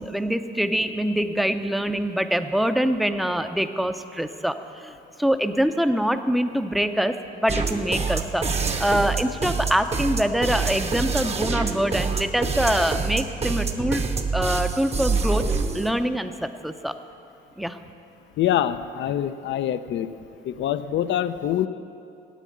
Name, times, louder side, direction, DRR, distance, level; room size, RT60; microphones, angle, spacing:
voice 1, 0.0-8.5 8.8-15.5 15.7-17.0 17.6-17.8, equal, ahead, 8 dB, 0.6 m, -24 dB
sound 1, 7.5-15.9, right 4 dB, 30° right, 0.9 m, -26 dB
voice 2, 18.4-20.1 20.4-21.7, left 11 dB, 70° left, 12 dB, 0.5 m, -25 dB
10.0 x 8.4 x 8.4 m, 2.6 s
cardioid pair, 90°, 20 cm